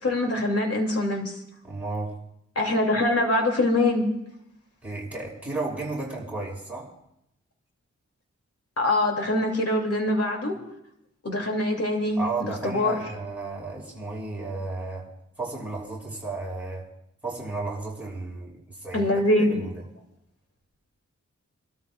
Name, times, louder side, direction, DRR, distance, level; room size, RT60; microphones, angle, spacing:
voice 1, 0.0-1.4 2.6-4.1 8.8-10.6 11.2-13.0 18.9-19.6, left 1 dB, 55° left, 2 dB, 2.8 m, -24 dB
voice 2, 1.6-2.2 4.8-6.9 12.2-15.1 15.4-16.9 17.2-19.1 19.5-19.8, right 3 dB, 5° right, -4 dB, 6.0 m, -33 dB
28.0 x 13.0 x 2.5 m, 0.80 s
wide cardioid pair, 65°, 29 cm